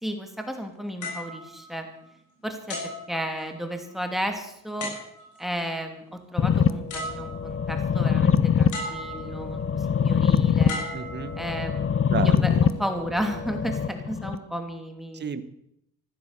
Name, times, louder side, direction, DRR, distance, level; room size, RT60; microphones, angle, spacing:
voice 1, 0.0-1.9 2.4-4.9 5.4-10.8 11.4-12.5 12.8-15.4, equal, ahead, 5 dB, 2.8 m, -33 dB
sound 1, 1.0-2.2 2.7-3.8 4.8-5.5 6.5-6.6 6.9-7.7 8.7-9.5 10.7-11.8 12.5-12.8, left 1 dB, 75° left, 7.3 m, -37 dB
sound 2, 6.4-14.3, left 7 dB, 45° left, 1.0 m, -24 dB
voice 2, 10.9-11.3 12.1-12.6 15.1-15.4, right 6 dB, 35° right, 11 dB, 1.3 m, -32 dB
15.5 x 11.5 x 6.9 m, 0.75 s
cardioid pair, 90°, 30 cm